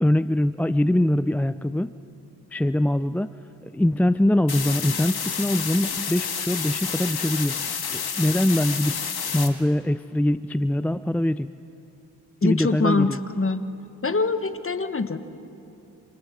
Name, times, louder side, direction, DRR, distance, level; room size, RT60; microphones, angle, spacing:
voice 1, 0.0-1.9 2.5-3.3 3.6-7.6 7.9-9.0 9.3-11.5 12.4-13.2, left 1 dB, 5° left, 14 dB, 0.4 m, -23 dB
sound 1, 4.5-9.5, left 6 dB, 65° left, 1.8 m, -29 dB
voice 2, 12.4-13.6 14.0-15.2, left 3 dB, 30° left, 10 dB, 1.3 m, -24 dB
27.5 x 27.0 x 3.8 m, 2.7 s
supercardioid pair, 40°, 40 cm